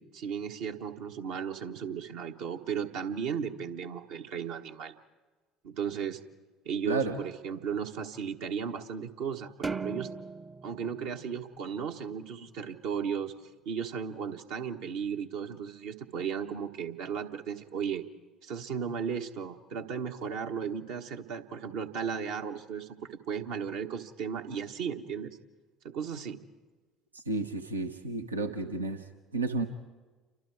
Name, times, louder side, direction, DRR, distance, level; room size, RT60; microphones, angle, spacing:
voice 1, 0.0-4.9 5.6-6.2 6.6-10.1 10.6-13.3 13.6-18.0 18.4-25.4 25.8-26.4, right 7 dB, 65° right, 4 dB, 1.3 m, -35 dB
voice 2, 6.8-7.2 27.1-29.7, right 3 dB, 90° right, 6 dB, 1.0 m, -32 dB
sound 1, 9.6-12.2, right 4 dB, 20° right, 0.7 m, -39 dB
29.0 x 25.0 x 4.8 m, 1.3 s
figure-of-eight pair, 60°, 0 cm